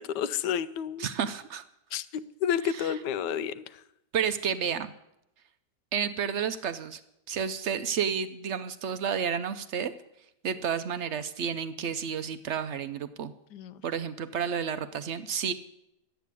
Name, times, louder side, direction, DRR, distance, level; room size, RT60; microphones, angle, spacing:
voice 1, 0.0-1.1 1.9-3.8 13.5-13.8, left 9 dB, 80° left, 15 dB, 1.3 m, -31 dB
voice 2, 1.0-1.6 2.7-2.9 4.1-4.9 5.9-7.0 7.3-9.9 10.4-13.3 13.8-15.5, right 7 dB, 70° right, 12 dB, 0.6 m, -31 dB
12.0 x 9.1 x 8.3 m, 0.84 s
omnidirectional pair, 1.8 m